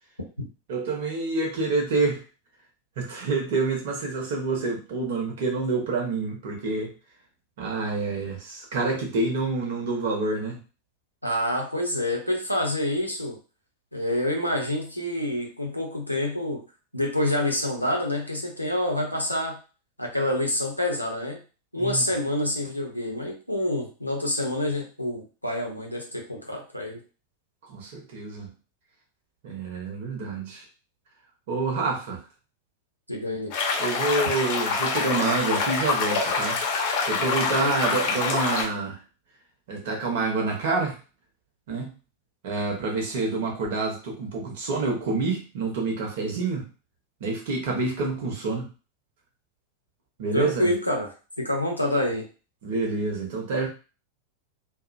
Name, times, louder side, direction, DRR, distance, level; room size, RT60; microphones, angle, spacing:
voice 1, 0.7-2.2 3.0-6.9 7.6-10.6 21.7-22.0 27.7-28.5 29.4-30.6 31.5-32.2 33.8-36.6 37.1-39.0 39.7-41.0 41.7-41.9 42.4-46.7 47.2-48.7 50.2-50.7 52.6-53.7, right 3 dB, 55° right, 0 dB, 0.8 m, -27 dB
voice 2, 11.2-13.4 13.9-16.6 16.9-19.6 20.0-21.4 21.7-27.0 33.1-33.5 37.6-37.7 50.3-51.1 51.4-52.3, left 1 dB, 90° left, 1 dB, 0.6 m, -27 dB
sound 1, 33.5-38.7, left 4 dB, 45° left, 0.6 m, -26 dB
2.5 x 2.0 x 2.4 m, 0.34 s
figure-of-eight pair, 90°, 0 cm